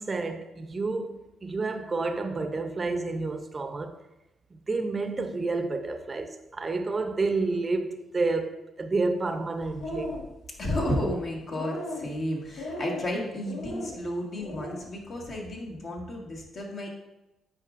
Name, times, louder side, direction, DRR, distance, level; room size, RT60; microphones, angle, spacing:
voice 1, 0.0-4.0 4.5-10.2, right 3 dB, 30° right, 0.6 m, -30 dB
sound 1, 9.6-10.3 10.6-11.1 11.5-12.1 12.6-13.1 13.5-13.9 14.3-14.8, left 1 dB, 80° left, 1.5 m, -36 dB
voice 2, 10.6-16.9, left 1 dB, 55° left, 1.6 m, -32 dB
8.4 x 5.2 x 2.5 m
cardioid pair, 90°, 0 cm